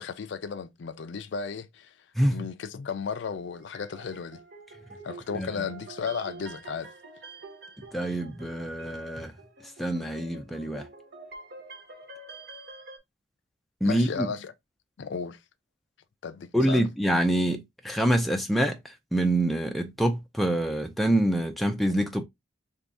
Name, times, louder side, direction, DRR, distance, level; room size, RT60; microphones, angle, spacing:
voice 1, 0.0-1.9 2.3-4.4 5.0-6.9 13.8-14.5 15.0-15.4 16.2-16.8, left 5 dB, 65° left, 0.4 m, -34 dB
sound 1, 3.4-13.0, right 3 dB, 55° right, 0.8 m, -47 dB
voice 2, 7.9-9.3 9.8-10.9 13.8-14.3 16.5-22.2, right 1 dB, ahead, 0.4 m, -26 dB
3.0 x 2.7 x 3.4 m
head